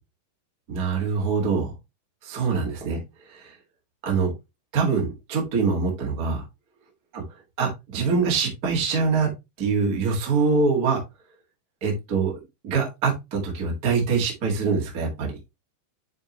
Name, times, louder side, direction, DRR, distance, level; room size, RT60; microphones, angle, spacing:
voice 1, 0.7-1.7 2.2-3.0 3.3-3.5 4.0-4.3 4.7-6.4 7.6-9.3 9.6-11.0 11.8-12.4 12.6-15.3, right 5 dB, 35° right, 0 dB, 1.9 m, -24 dB
8.9 x 4.8 x 3.0 m, 0.22 s
omnidirectional pair, 4.2 m